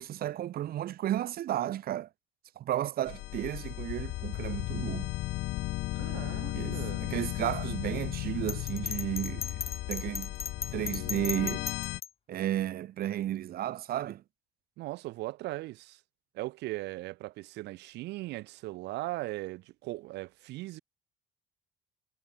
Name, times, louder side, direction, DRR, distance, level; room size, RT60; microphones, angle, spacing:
voice 1, 0.0-2.1 2.6-5.1 6.5-10.3 10.7-11.7 12.3-14.2, right 12 dB, 60° right, 2.2 m, -33 dB
sound 1, 3.1-12.0, left 19 dB, 85° left, 0.9 m, -35 dB
voice 2, 5.9-7.2 14.8-16.0 16.3-20.8, right 18 dB, 85° right, 7.6 m, -39 dB
Bell, 8.5-12.1, left 7 dB, 35° left, 1.5 m, -36 dB
cardioid pair, 110°, 17 cm